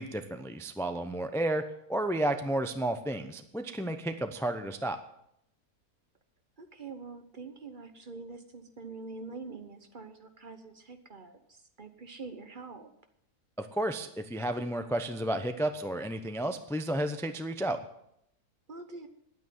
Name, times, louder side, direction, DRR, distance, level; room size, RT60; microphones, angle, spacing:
voice 1, 0.0-1.6 1.9-5.0 13.6-17.8, right 1 dB, 5° left, 8 dB, 0.4 m, -32 dB
voice 2, 6.6-12.9 18.7-19.1, right 4 dB, 35° right, 8 dB, 1.0 m, -45 dB
10.5 x 9.2 x 9.3 m, 0.76 s
omnidirectional pair, 1.6 m